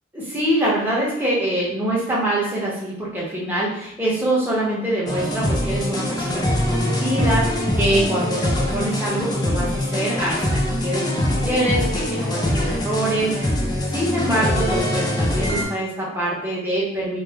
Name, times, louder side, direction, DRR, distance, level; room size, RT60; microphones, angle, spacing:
voice 1, 0.1-13.6 13.9-17.2, right 1 dB, 10° right, -6 dB, 0.8 m, -24 dB
sound 1, 5.1-15.6, left 1 dB, 20° left, 0.4 m, -23 dB
3.0 x 2.1 x 3.5 m, 0.80 s
head